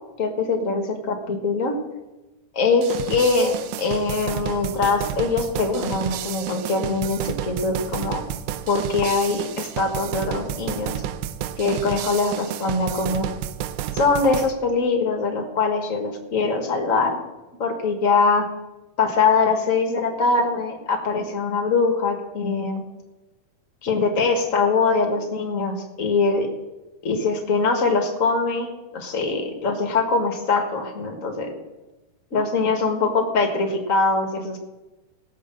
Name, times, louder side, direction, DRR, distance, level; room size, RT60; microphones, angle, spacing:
voice 1, 0.2-1.7 2.5-8.2 8.7-10.9 11.6-13.3 13.9-17.2 17.6-18.4 19.0-22.8 23.8-26.5 27.0-31.5 32.3-34.6, left 4 dB, 60° left, 4 dB, 0.8 m, -22 dB
sound 1, 2.8-14.5, right 11 dB, 90° right, 2.5 m, -31 dB
18.0 x 6.7 x 7.5 m, 1.1 s
omnidirectional pair, 4.2 m